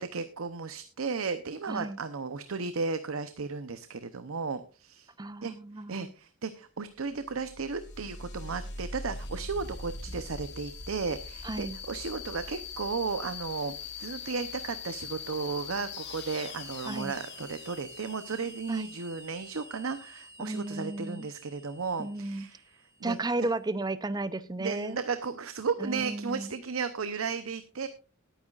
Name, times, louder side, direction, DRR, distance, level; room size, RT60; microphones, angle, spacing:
voice 1, 0.0-5.1 5.4-22.6 23.0-23.5 24.6-27.9, right 4 dB, 80° right, 11 dB, 0.8 m, -34 dB
voice 2, 1.7-2.0 5.2-6.1 11.4-11.8 16.9-17.1 18.7-18.9 20.4-21.3 22.0-22.5 23.0-25.0 25.8-26.5, right 2 dB, 20° right, 15 dB, 0.6 m, -34 dB
sound 1, 7.1-23.5, left 4 dB, 55° left, 2.2 m, -43 dB
19.5 x 9.2 x 2.4 m, 0.34 s
head